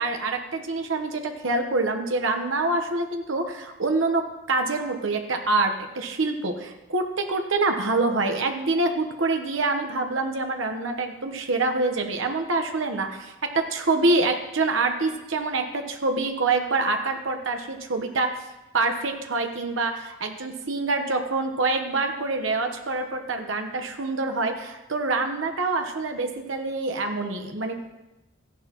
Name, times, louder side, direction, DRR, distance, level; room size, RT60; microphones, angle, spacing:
voice 1, 0.0-18.3 18.7-27.9, right 3 dB, 70° right, 5 dB, 1.1 m, -26 dB
15.0 x 10.5 x 3.0 m, 1.0 s
head